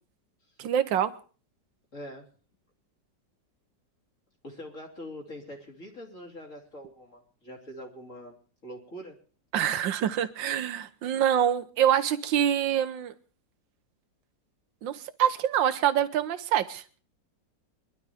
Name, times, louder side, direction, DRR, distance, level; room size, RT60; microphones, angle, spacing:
voice 1, 0.6-1.1 9.5-13.1 14.8-16.8, right 10 dB, 85° right, 11 dB, 1.6 m, -25 dB
voice 2, 1.9-2.3 4.4-8.3 8.6-9.2, equal, 45° left, 1 dB, 3.5 m, -43 dB
22.5 x 12.0 x 3.5 m, 0.38 s
omnidirectional pair, 2.0 m